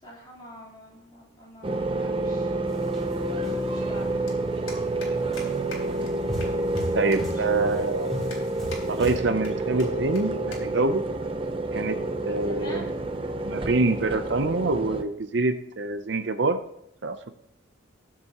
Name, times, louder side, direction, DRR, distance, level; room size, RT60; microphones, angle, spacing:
voice 1, 0.0-2.5 3.7-4.1 6.9-7.4 7.7-7.8 12.3-13.0, equal, 25° left, -4 dB, 3.6 m, -45 dB
sound 1, 1.6-15.0, right 2 dB, 25° right, 0.7 m, -29 dB
sound 2, 2.7-4.1 4.6-4.8 5.3-9.2, equal, ahead, 4.1 m, -37 dB
sound 3, 4.3-4.4 4.7-5.1 5.4-5.5 5.7-5.8 6.1-6.2 6.4-6.8 7.1-7.2 7.7-7.8 8.3-8.8 9.1-9.5 9.8-9.9 10.1-10.2 10.5-10.6 10.9-11.2 11.9-12.2, left 3 dB, 85° left, 4.0 m, -41 dB
voice 2, 6.9-8.1 8.8-11.0 11.7-12.9 13.4-16.6 17.0-17.3, right 3 dB, 60° right, 9 dB, 0.6 m, -26 dB
21.0 x 7.5 x 3.0 m, 0.78 s
head